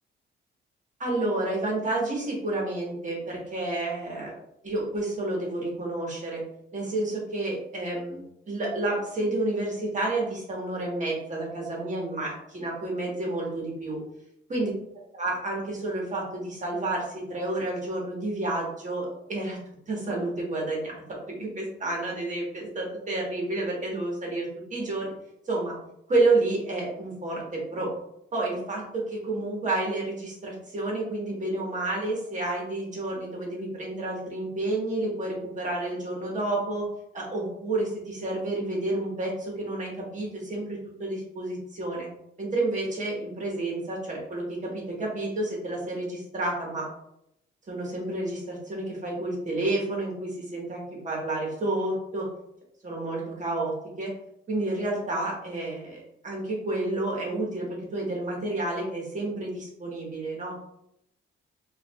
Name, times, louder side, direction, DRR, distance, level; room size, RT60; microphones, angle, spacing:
voice 1, 1.0-4.3 4.6-6.4 6.7-8.2 8.5-14.0 14.5-14.7 15.1-19.6 19.9-25.1 25.4-25.7 26.1-27.9 28.3-36.8 37.1-42.1 42.4-46.9 47.7-52.3 52.8-54.1 54.5-56.0 56.2-60.5, right 2 dB, 40° right, -3 dB, 1.4 m, -30 dB
4.6 x 2.6 x 2.3 m, 0.78 s
cardioid pair, 90°, 20 cm